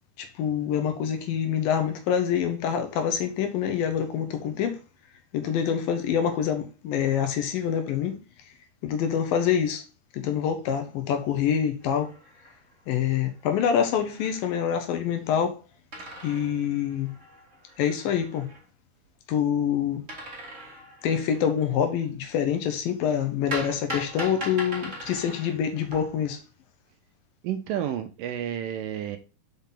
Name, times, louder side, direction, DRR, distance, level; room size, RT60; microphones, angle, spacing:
voice 1, 0.2-4.8 5.3-8.2 8.8-9.8 10.1-12.1 12.9-15.6 16.2-17.1 17.8-18.5 19.3-20.0 21.0-26.4, left 8 dB, 75° left, 2.5 m, -26 dB
sound 1, 11.8-12.8 13.2-13.3 13.4-14.6 15.9-18.6 20.1-21.6 23.5-26.4, equal, 30° right, 1.5 m, -40 dB
voice 2, 27.4-29.2, right 10 dB, 80° right, 2.0 m, -30 dB
5.8 x 5.7 x 3.7 m
omnidirectional pair, 4.5 m